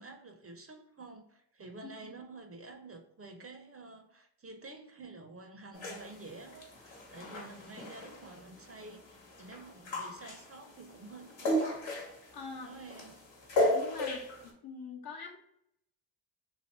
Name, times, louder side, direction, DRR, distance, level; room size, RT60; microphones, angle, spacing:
voice 1, 0.0-11.8 12.6-13.2, right 3 dB, 30° right, 5 dB, 0.6 m, -50 dB
sound 1, 5.7-14.5, left 1 dB, 70° left, 1.1 m, -36 dB
voice 2, 12.3-12.7 13.6-15.4, left 5 dB, 50° left, 2 dB, 0.8 m, -44 dB
2.7 x 2.6 x 3.1 m, 0.75 s
supercardioid pair, 40°, 46 cm